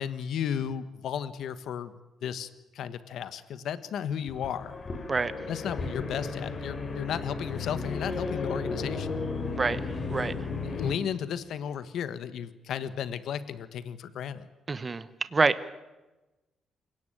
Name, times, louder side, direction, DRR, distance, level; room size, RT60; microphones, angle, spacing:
voice 1, 0.0-2.5 2.7-4.7 5.5-9.2 10.6-14.5, left 8 dB, 65° left, 13 dB, 1.4 m, -34 dB
sound 1, 4.3-11.0, left 4 dB, 30° left, 3.1 m, -34 dB
voice 2, 14.7-15.0 15.3-15.7, right 4 dB, 20° right, 14 dB, 0.9 m, -26 dB
28.5 x 17.5 x 9.1 m, 1.1 s
cardioid pair, 170°, 0 cm